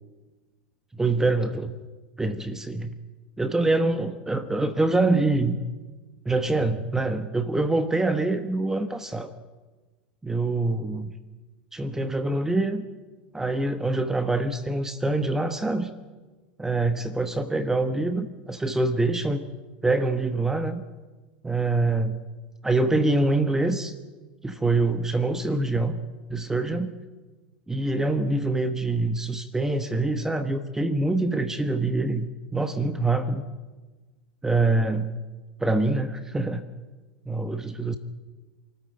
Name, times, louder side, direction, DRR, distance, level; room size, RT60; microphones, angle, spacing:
voice 1, 0.9-1.8 2.2-2.9 3.4-5.6 6.2-9.3 10.2-11.2 11.7-12.8 13.3-15.9 16.6-19.5 19.8-20.8 21.4-22.2 22.6-23.9 24.4-26.0 26.3-26.9 27.7-33.4 34.4-35.1 35.6-36.6 37.3-38.0, right 2 dB, 10° right, 10 dB, 1.3 m, -25 dB
28.0 x 14.0 x 9.1 m, 1.3 s
hypercardioid pair, 110°, 5 cm